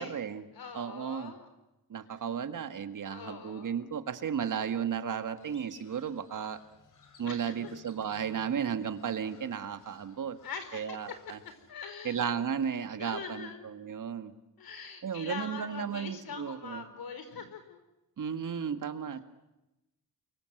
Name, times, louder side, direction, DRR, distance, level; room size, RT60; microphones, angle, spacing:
voice 1, 0.0-0.4 0.7-1.3 1.9-6.6 7.2-10.4 10.7-11.4 12.0-14.3 15.0-16.8 18.2-19.2, right 7 dB, 55° right, 9 dB, 2.0 m, -34 dB
voice 2, 0.5-1.5 2.1-2.2 3.0-3.8 7.2-7.7 10.4-11.2 11.7-12.2 13.0-13.7 14.6-17.8, left 6 dB, 75° left, 9 dB, 4.5 m, -43 dB
Crow, 5.4-11.7, left 4 dB, 55° left, 4.4 m, -60 dB
29.5 x 23.5 x 8.0 m, 0.97 s
wide cardioid pair, 125°, 36 cm